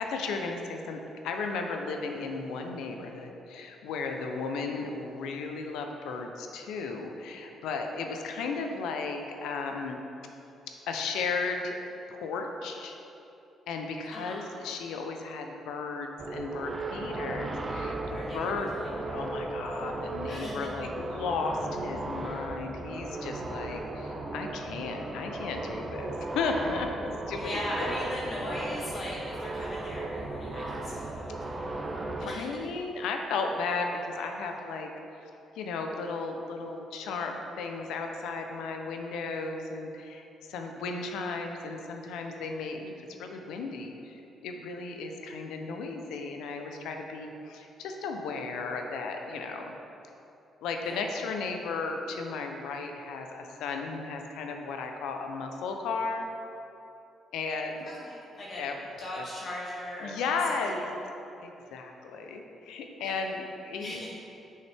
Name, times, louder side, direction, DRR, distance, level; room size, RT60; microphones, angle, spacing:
voice 1, 0.0-10.0 10.9-11.8 12.1-13.0 13.7-18.7 19.1-28.1 32.1-34.9 35.2-35.3 35.6-49.7 50.6-56.3 57.3-57.9 58.6-58.8 59.2-59.3 60.0-60.9 61.4-64.1, left 4 dB, 90° left, 4 dB, 0.6 m, -35 dB
voice 2, 14.1-14.4 18.1-18.9 20.3-20.7 27.4-32.4 50.8-51.0 57.8-58.6 59.0-60.8 63.0-63.2 63.8-64.1, left 1 dB, 50° left, -5 dB, 0.9 m, -39 dB
sound 1, 16.2-32.4, right 2 dB, 30° right, 0.6 m, -36 dB
6.4 x 5.6 x 3.4 m, 2.9 s
cardioid pair, 90°, 0 cm